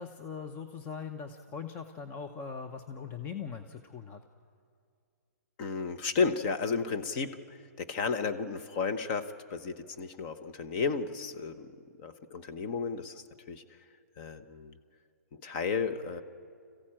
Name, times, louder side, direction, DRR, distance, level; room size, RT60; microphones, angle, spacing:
voice 1, 0.0-4.2, left 6 dB, 20° left, 6 dB, 0.7 m, -41 dB
voice 2, 5.6-11.7 12.0-13.6 14.2-14.7 15.3-16.2, left 5 dB, 35° left, 8 dB, 1.1 m, -33 dB
25.5 x 15.0 x 8.9 m, 2.3 s
hypercardioid pair, 150°, 9 cm